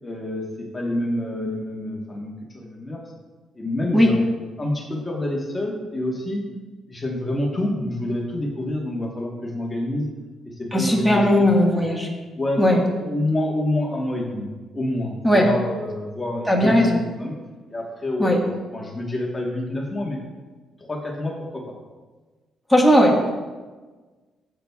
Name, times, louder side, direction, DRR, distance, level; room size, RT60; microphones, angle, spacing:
voice 1, 0.0-3.0 3.5-4.2 4.6-6.4 6.9-10.1 10.4-11.8 12.4-14.4 14.7-17.4 17.7-20.2 20.9-21.7, left 1 dB, 20° left, -2 dB, 1.3 m, -27 dB
voice 2, 10.7-12.1 12.6-12.8 15.2-15.4 16.5-17.0 18.2-18.4 22.7-23.3, equal, ahead, -2 dB, 1.5 m, -17 dB
12.0 x 6.8 x 2.4 m, 1.3 s
cardioid pair, 90°, 0 cm